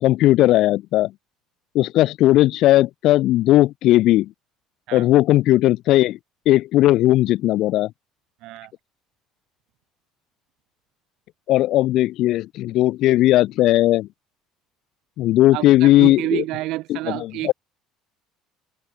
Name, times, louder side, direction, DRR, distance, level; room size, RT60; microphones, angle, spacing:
voice 1, 0.0-1.1 1.7-4.3 4.9-6.2 6.5-7.9 11.5-14.1 15.2-16.4 16.9-17.5, left 15 dB, 60° left, 0.9 m, -17 dB
voice 2, 8.4-8.7 15.5-17.5, right 18 dB, 65° right, 2.2 m, -28 dB
cardioid pair, 140°, 0 cm